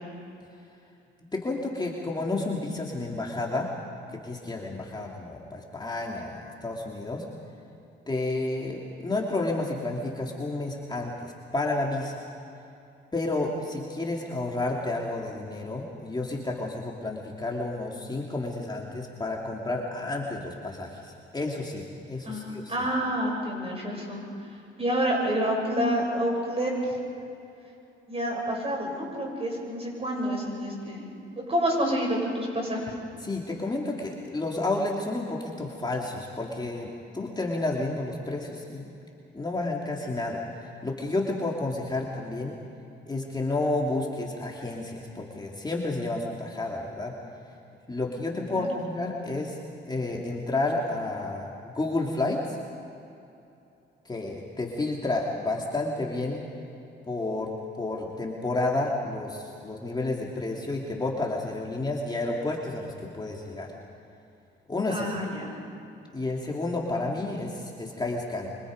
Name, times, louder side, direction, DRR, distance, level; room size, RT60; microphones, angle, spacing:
voice 1, 1.3-3.7 4.1-7.2 8.1-12.2 13.1-22.7 33.2-38.9 39.3-40.4 40.8-42.5 43.1-47.1 47.9-49.6 49.9-52.4 54.0-56.4 57.1-57.5 57.8-63.7 64.7-65.1 66.1-68.5, left 2 dB, 20° left, -2 dB, 2.8 m, -31 dB
voice 2, 22.2-24.2 24.8-27.0 28.1-31.1 31.3-32.9 48.5-48.7 64.9-65.5, equal, 30° right, 0 dB, 7.5 m, -28 dB
26.5 x 26.0 x 5.2 m, 2.8 s
cardioid pair, 90°, 20 cm